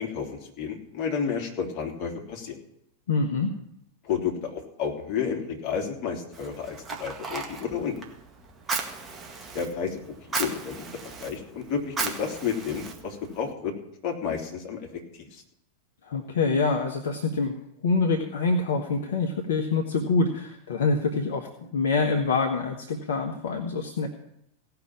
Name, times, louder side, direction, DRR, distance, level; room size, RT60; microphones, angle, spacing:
voice 1, 0.0-2.6 4.0-8.0 9.5-10.0 10.3-10.8 11.2-13.7 14.0-15.0 15.3-15.4, left 6 dB, 40° left, 1 dB, 3.1 m, -31 dB
voice 2, 3.1-3.5 16.1-17.5 17.8-24.1, left 4 dB, 60° left, 4 dB, 1.3 m, -25 dB
Fire, 6.3-13.5, right 4 dB, 20° right, 1.8 m, -36 dB
17.0 x 5.9 x 8.7 m, 0.78 s
figure-of-eight pair, 90°, 0 cm